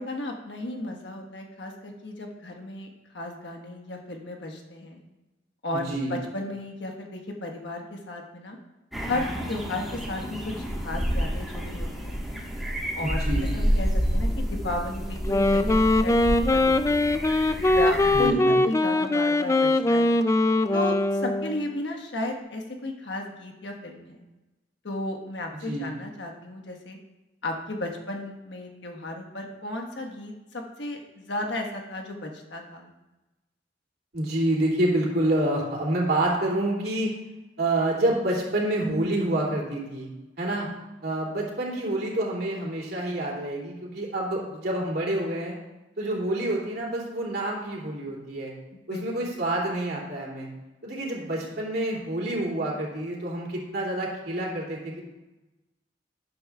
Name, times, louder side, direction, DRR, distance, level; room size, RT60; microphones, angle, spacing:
voice 1, 0.0-2.9 3.1-5.0 5.6-8.6 9.1-12.2 12.9-13.2 13.5-17.2 17.7-20.2 20.7-24.2 24.8-27.0 27.4-32.9 48.7-49.3, left 1 dB, 70° left, 2 dB, 1.4 m, -34 dB
voice 2, 5.7-6.2 13.0-13.5 18.1-18.5 25.6-25.9 34.1-37.1 37.6-40.1 40.4-40.7 41.0-45.5 46.0-48.5 48.9-50.5 50.8-55.0, right 1 dB, 55° right, -3 dB, 2.7 m, -27 dB
sound 1, 8.9-18.3, equal, ahead, 1.4 m, -29 dB
Wind instrument woodwind instrument, 15.2-21.7, left 2 dB, 15° left, 0.3 m, -22 dB
12.5 x 9.7 x 2.4 m, 1.1 s
head